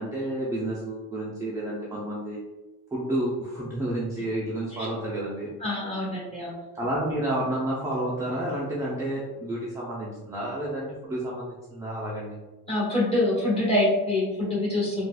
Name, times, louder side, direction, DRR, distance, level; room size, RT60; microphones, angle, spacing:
voice 1, 0.0-2.4 2.9-5.5 6.7-12.4, right 1 dB, 10° right, -6 dB, 0.5 m, -30 dB
voice 2, 5.6-6.5 12.7-15.1, left 1 dB, 15° left, -7 dB, 1.3 m, -25 dB
4.0 x 2.3 x 2.3 m, 1.2 s
cardioid pair, 135°, 38 cm